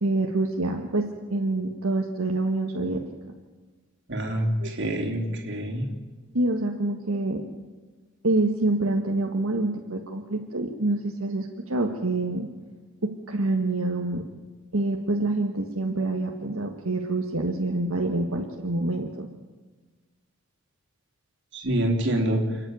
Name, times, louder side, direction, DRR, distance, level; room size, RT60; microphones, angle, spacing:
voice 1, 0.0-3.0 4.6-4.7 6.3-7.4 8.2-12.5 13.0-14.2 14.7-19.3, right 2 dB, 75° right, 1 dB, 1.6 m, -26 dB
voice 2, 4.1-5.9 21.5-22.6, right 1 dB, 55° right, 1 dB, 3.3 m, -26 dB
29.0 x 9.9 x 9.3 m, 1.3 s
head